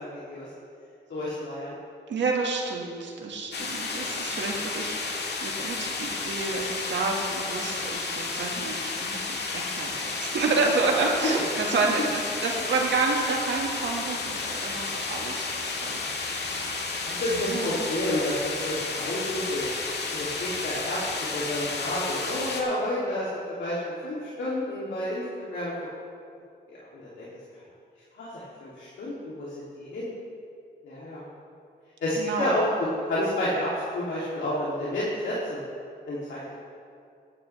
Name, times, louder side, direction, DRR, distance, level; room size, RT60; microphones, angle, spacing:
voice 1, 1.1-1.7 17.0-18.3 18.6-19.7 20.1-21.0 21.3-23.3 23.6-23.8 24.0-25.2 25.5-25.7 26.9-27.3 28.2-29.5 29.8-30.1 30.8-31.2 32.0-32.6 33.1-33.7 33.9-35.6 36.1-36.5, left 1 dB, 80° left, -9 dB, 2.8 m, -30 dB
voice 2, 2.1-16.0 16.4-17.0 17.3-17.9 32.1-32.6, right 3 dB, 80° right, 0 dB, 1.8 m, -29 dB
sound 1, 3.5-22.6, left 4 dB, 65° left, 1.7 m, -32 dB
15.5 x 11.5 x 3.4 m, 2.5 s
cardioid pair, 85°, 19 cm